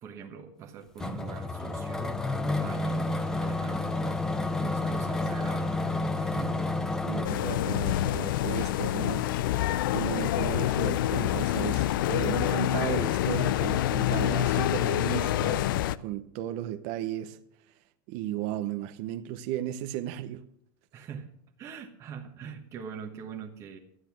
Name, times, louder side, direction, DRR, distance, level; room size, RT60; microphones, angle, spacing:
voice 1, 0.0-3.9 4.4-6.6 20.9-21.3 21.6-23.8, right 7 dB, 25° right, 1.2 m, -43 dB
sound 1, 1.0-7.3, left 2 dB, 5° left, 0.7 m, -30 dB
voice 2, 7.1-9.3 9.9-15.7 16.0-17.4 18.1-20.5, right 12 dB, 45° right, 0.8 m, -35 dB
sound 2, 7.2-16.0, left 13 dB, 75° left, 0.6 m, -27 dB
13.0 x 10.0 x 6.0 m
supercardioid pair, 165°, 11 cm